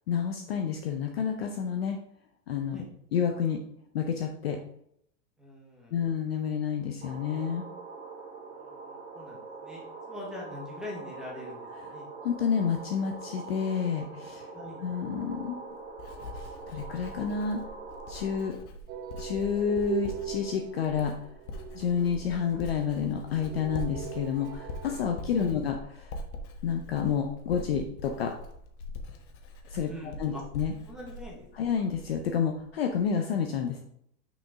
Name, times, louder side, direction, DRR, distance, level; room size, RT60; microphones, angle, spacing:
voice 1, 0.1-2.0 2.5-2.8 3.1-3.6 3.9-4.6 5.9-7.7 12.2-14.5 14.8-15.6 16.3-17.6 18.1-18.6 19.2-21.1 21.7-26.1 26.6-28.3 29.7-29.9 30.2-30.7 31.5-33.8, left 7 dB, 40° left, 4 dB, 0.5 m, -29 dB
voice 2, 5.4-6.0 8.5-11.6 11.9-12.1 14.5-14.8 25.3-25.6 29.9-30.4 30.9-31.5, left 1 dB, ahead, -4 dB, 0.8 m, -43 dB
sound 1, 7.0-18.5, right 3 dB, 15° right, 1.5 m, -43 dB
Writing, 15.2-32.3 32.6-33.0, left 1 dB, 60° left, 1.3 m, -43 dB
sound 2, 18.9-25.0, right 12 dB, 75° right, 0.8 m, -39 dB
6.1 x 5.2 x 3.5 m, 0.73 s
supercardioid pair, 165°, 50 cm